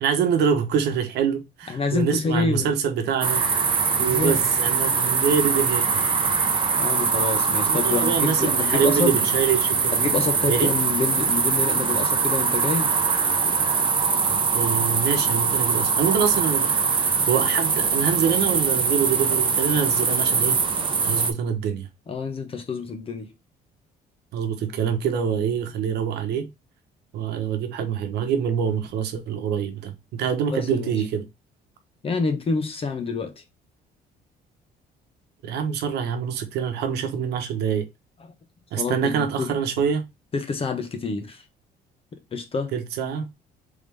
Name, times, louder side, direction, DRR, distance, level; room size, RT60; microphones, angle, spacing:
voice 1, 0.0-3.5 4.0-6.1 7.6-10.0 10.5-10.7 14.5-16.8 17.3-20.6 21.0-21.9 24.3-26.5 27.1-31.3 35.4-37.8 38.7-40.1 42.7-43.3, right 7 dB, 75° right, 1.0 m, -25 dB
voice 2, 1.7-2.7 4.0-4.4 6.8-9.2 9.9-12.9 22.1-23.3 30.5-31.0 32.0-33.4 38.2-38.3 38.8-39.5 40.3-41.4 42.3-42.7, left 4 dB, 35° left, 1.1 m, -27 dB
sound 1, 3.2-21.3, right 5 dB, 30° right, 0.8 m, -22 dB
3.7 x 3.6 x 3.4 m
cardioid pair, 110°, 17 cm